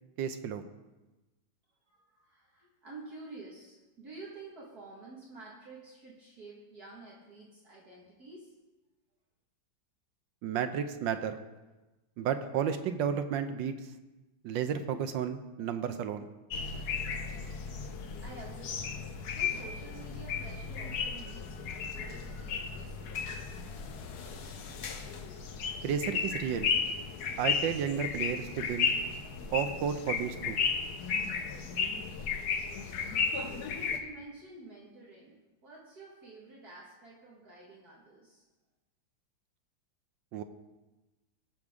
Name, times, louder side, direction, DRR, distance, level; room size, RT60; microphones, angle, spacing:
voice 1, 0.2-0.6 10.4-11.4 12.2-13.7 14.4-16.3 25.8-26.7 27.4-29.0 29.5-30.6 40.3-40.4, right 8 dB, 75° right, 9 dB, 1.3 m, -32 dB
voice 2, 1.9-8.5 18.2-19.1 19.3-23.2 33.9-38.4, right 3 dB, 50° right, -4 dB, 2.1 m, -50 dB
sound 1, 16.5-34.0, left 6 dB, 60° left, 1.2 m, -34 dB
19.0 x 6.7 x 3.6 m, 1.1 s
omnidirectional pair, 2.2 m